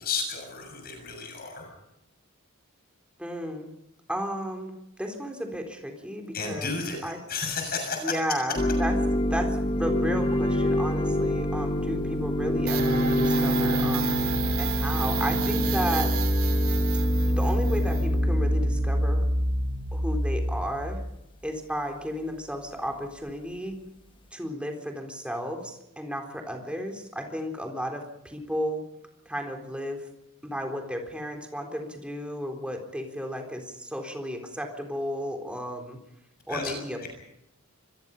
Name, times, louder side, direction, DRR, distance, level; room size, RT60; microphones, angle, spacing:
voice 1, 0.0-1.7 6.3-8.2 8.5-8.6 36.5-37.1, left 4 dB, 45° left, 3 dB, 6.7 m, -32 dB
voice 2, 3.2-3.7 4.1-4.7 5.0-6.7 7.0-7.2 8.0-8.9 9.3-14.1 14.6-16.1 17.4-19.3 19.9-21.0 21.4-23.8 24.3-28.8 29.3-30.1 30.4-36.0 36.5-37.1, equal, 5° right, 3 dB, 4.0 m, -33 dB
sound 1, 8.6-20.1, equal, 25° left, 1.1 m, -27 dB
sound 2, 12.7-21.1, right 1 dB, 70° right, 2.7 m, -26 dB
26.0 x 22.0 x 5.5 m, 0.85 s
head